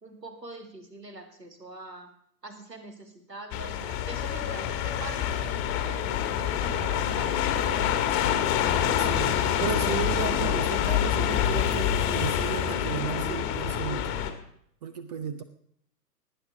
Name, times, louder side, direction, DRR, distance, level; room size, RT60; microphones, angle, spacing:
voice 1, 0.0-2.1 2.4-6.0 6.4-8.1, right 2 dB, 85° right, 6 dB, 2.5 m, -44 dB
sound 1, 3.5-14.3, left 9 dB, 25° left, 1.5 m, -26 dB
voice 2, 9.0-14.1 14.8-15.4, right 8 dB, 25° right, 11 dB, 0.6 m, -34 dB
18.0 x 9.3 x 4.9 m, 0.69 s
figure-of-eight pair, 115°, 49 cm